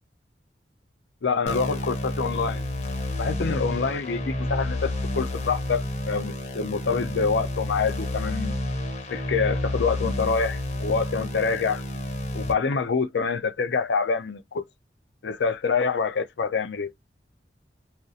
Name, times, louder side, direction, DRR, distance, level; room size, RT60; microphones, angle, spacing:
voice 1, 1.2-2.7 3.2-8.5 9.1-11.8 12.3-14.6 15.2-16.9, left 5 dB, 70° left, 0.4 m, -26 dB
sound 1, 1.5-12.5, left 1 dB, 35° left, 0.7 m, -30 dB
2.4 x 2.0 x 2.6 m
head